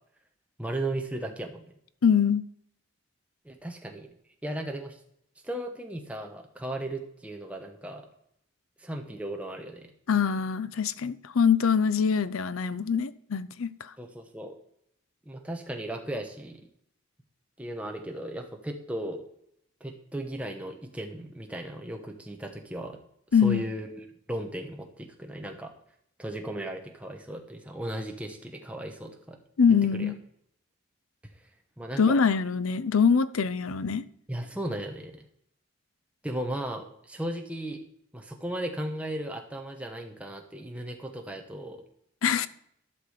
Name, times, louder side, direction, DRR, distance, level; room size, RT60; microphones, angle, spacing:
voice 1, 0.6-1.7 3.4-4.1 4.4-5.0 5.4-8.1 8.8-9.9 14.0-14.5 15.2-16.7 17.6-19.2 19.8-23.0 23.4-25.7 26.2-29.4 29.9-30.1 31.8-32.1 34.3-35.2 36.2-37.8 38.1-41.8, right 1 dB, 5° right, 1.1 m, -36 dB
voice 2, 2.0-2.5 10.1-13.9 23.3-23.6 29.6-30.2 32.0-34.0 42.2-42.5, left 6 dB, 90° left, 0.6 m, -24 dB
11.5 x 6.2 x 4.9 m
head